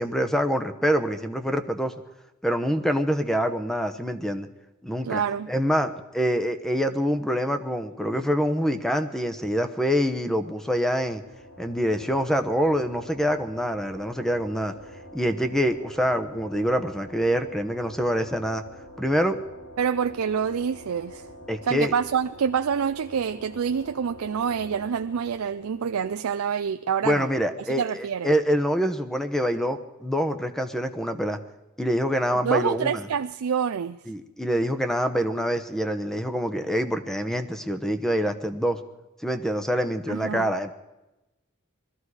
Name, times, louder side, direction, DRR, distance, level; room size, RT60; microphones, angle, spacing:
voice 1, 0.0-1.9 2.4-4.5 4.8-5.2 5.5-11.2 11.6-14.7 15.1-18.6 19.0-19.4 21.5-21.9 27.0-31.4 31.8-33.0 34.1-38.8 39.2-40.7, equal, ahead, 0.9 m, -25 dB
voice 2, 5.0-5.5 19.8-21.3 21.6-27.3 27.6-28.3 32.4-34.0 40.1-40.5, right 7 dB, 90° right, 0.4 m, -27 dB
sound 1, 10.5-26.3, equal, 65° left, 1.5 m, -46 dB
20.5 x 14.0 x 4.8 m
head